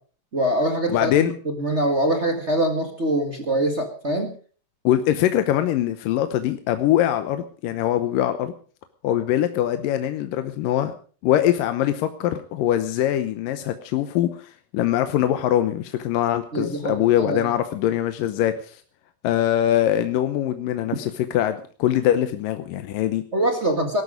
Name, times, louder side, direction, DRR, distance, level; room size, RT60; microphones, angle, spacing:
voice 1, 0.3-4.3 16.5-17.5 23.3-24.0, right 1 dB, 35° right, 3 dB, 1.1 m, -24 dB
voice 2, 0.9-1.3 4.8-8.5 9.0-10.9 11.2-18.8 19.2-23.2, left 12 dB, 75° left, 9 dB, 2.5 m, -22 dB
18.5 x 12.5 x 5.1 m, 0.41 s
omnidirectional pair, 4.2 m